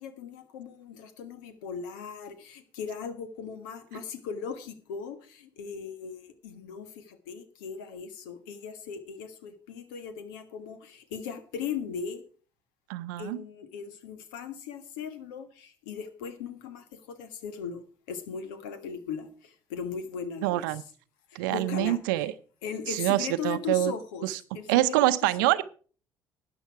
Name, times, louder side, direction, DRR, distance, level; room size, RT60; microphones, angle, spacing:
voice 1, 0.0-12.2 13.2-19.3 19.7-20.6 21.5-22.3 22.6-24.3 24.5-24.7 25.0-25.1 25.4-25.5, left 6 dB, 80° left, 11 dB, 1.5 m, -38 dB
voice 2, 12.9-13.4 20.4-20.8 21.3-22.3 22.9-23.9 24.2-24.4 24.7-25.6, right 16 dB, 80° right, 14 dB, 0.7 m, -25 dB
13.0 x 9.1 x 4.7 m, 0.41 s
hypercardioid pair, 60°, 11 cm